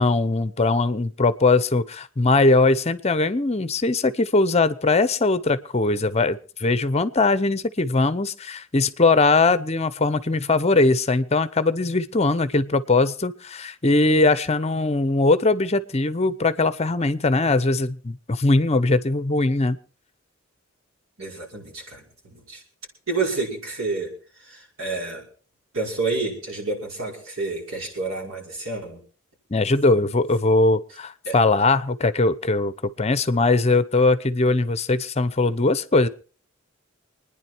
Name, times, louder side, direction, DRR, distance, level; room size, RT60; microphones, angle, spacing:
voice 1, 0.0-19.8 29.5-36.1, left 3 dB, 30° left, 15 dB, 0.8 m, -20 dB
voice 2, 21.2-22.6 23.1-24.1 24.4-25.2 25.7-29.0 31.3-31.4, right 3 dB, 90° right, -1 dB, 5.6 m, -29 dB
26.0 x 10.0 x 4.5 m, 0.40 s
head